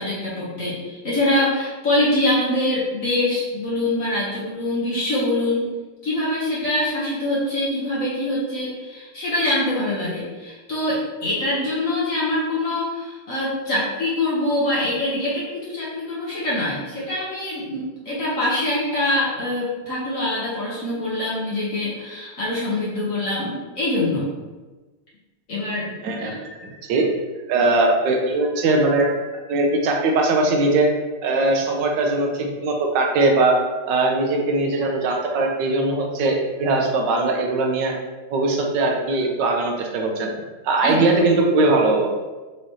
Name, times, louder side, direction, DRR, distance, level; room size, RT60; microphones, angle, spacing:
voice 1, 0.0-5.7 6.0-24.3 25.5-26.3 40.8-41.2, left 1 dB, 55° left, -8 dB, 1.0 m, -24 dB
voice 2, 26.0-27.1 27.5-30.9 31.2-33.6 33.9-37.9 38.3-40.3 40.6-42.1, right 2 dB, 70° right, 1 dB, 1.1 m, -20 dB
4.8 x 3.2 x 2.8 m, 1.2 s
omnidirectional pair, 2.4 m